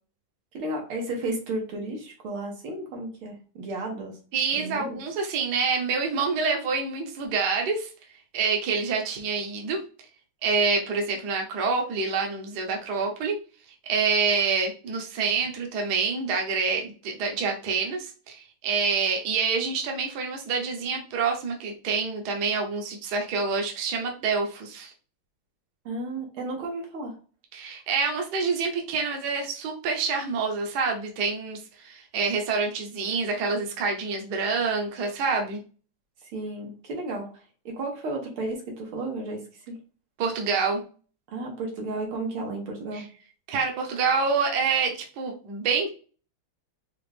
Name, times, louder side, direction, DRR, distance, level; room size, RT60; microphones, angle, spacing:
voice 1, 0.5-4.2 4.5-5.0 25.9-27.2 36.2-39.8 41.3-43.1, right 2 dB, 85° right, 0 dB, 2.1 m, -33 dB
voice 2, 4.3-7.9 8.3-9.8 10.4-13.4 13.8-24.9 27.5-35.6 40.2-40.8 42.9-43.0 43.5-45.9, right 5 dB, 60° right, 2 dB, 1.3 m, -27 dB
5.0 x 2.4 x 3.3 m, 0.38 s
omnidirectional pair, 2.2 m